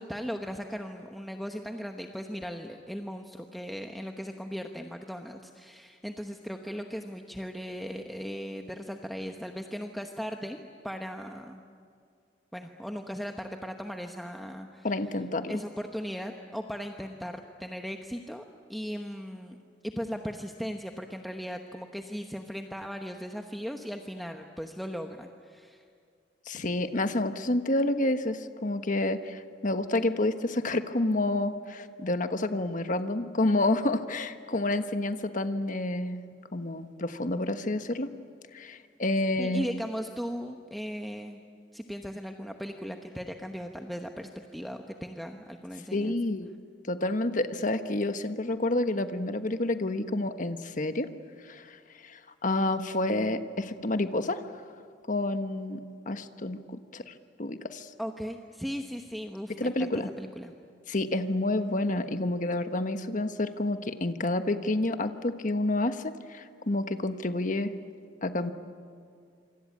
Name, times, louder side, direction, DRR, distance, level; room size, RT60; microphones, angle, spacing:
voice 1, 0.0-11.6 12.5-14.9 15.5-18.4 18.7-19.6 19.8-25.8 39.4-41.4 41.7-46.2 58.0-60.5, equal, ahead, 3 dB, 1.0 m, -37 dB
voice 2, 14.8-15.5 26.5-36.2 36.5-38.1 38.5-39.7 45.9-46.5 46.9-51.1 51.4-51.8 52.0-54.5 55.1-57.1 57.4-57.9 59.5-60.1 60.9-67.7 68.2-68.5, left 2 dB, 45° left, 9 dB, 1.3 m, -29 dB
26.5 x 25.0 x 8.6 m, 2.3 s
head